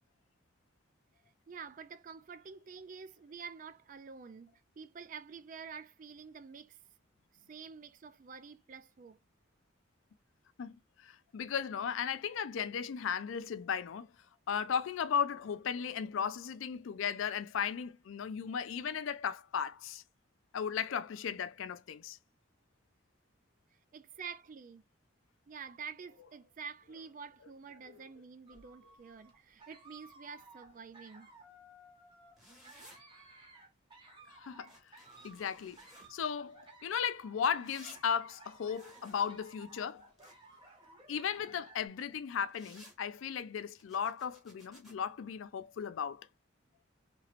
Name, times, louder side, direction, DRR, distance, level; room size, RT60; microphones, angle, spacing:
voice 1, 1.5-6.8 7.5-9.2 23.9-24.8 25.5-31.3, right 6 dB, 40° right, 0.3 m, -48 dB
voice 2, 10.6-14.1 14.5-20.0 20.5-22.2 34.3-34.7 35.2-35.8 36.1-40.0 41.1-46.3, left 7 dB, 75° left, 0.4 m, -36 dB
sound 1, 28.5-41.9, right 2 dB, 25° right, 1.0 m, -57 dB
sound 2, 32.4-33.0 34.6-36.1 37.6-38.0 38.7-40.6 42.5-43.0 43.7-44.9, equal, ahead, 1.2 m, -57 dB
3.0 x 2.8 x 2.4 m
head